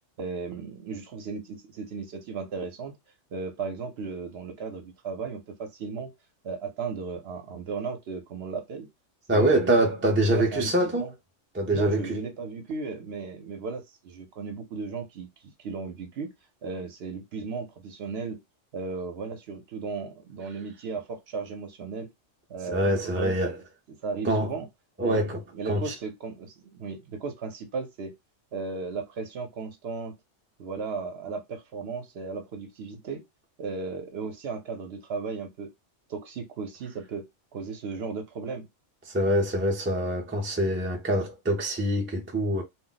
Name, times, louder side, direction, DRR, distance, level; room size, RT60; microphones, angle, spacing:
voice 1, 0.2-2.9 3.3-6.1 6.4-8.9 9.3-9.8 10.2-11.1 11.7-15.3 15.6-16.3 16.6-18.4 18.7-22.1 22.5-23.5 24.0-24.7 25.0-28.1 28.5-30.2 30.6-33.2 33.6-35.7 36.1-37.3 37.5-38.7, right 4 dB, 60° right, 0.8 m, -35 dB
voice 2, 9.3-11.1 11.5-12.2 22.7-23.6 24.2-24.5 25.0-25.4 25.7-25.9 39.1-42.6, right 1 dB, 20° right, 0.3 m, -25 dB
2.3 x 2.0 x 3.8 m
omnidirectional pair, 1.3 m